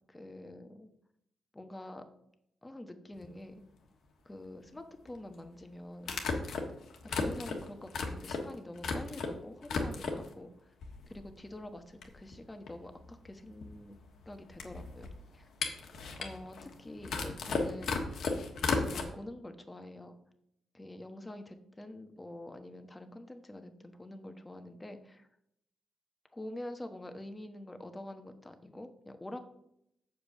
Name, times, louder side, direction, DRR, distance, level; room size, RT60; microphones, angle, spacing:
voice 1, 0.1-0.9 1.5-2.0 2.6-3.6 4.2-6.2 7.0-10.5 11.1-13.9 14.3-15.1 15.3-15.5 16.2-18.1 18.9-20.2 20.7-25.3 26.3-29.4, left 1 dB, 15° left, 7 dB, 1.1 m, -46 dB
sound 1, 3.2-3.3 5.1-5.2 6.0-9.3 9.6-10.3 10.8-11.5 11.7-11.8 12.0-19.0, left 4 dB, 70° left, 1.4 m, -35 dB
6.8 x 5.2 x 6.6 m, 0.76 s
cardioid pair, 85°, 0 cm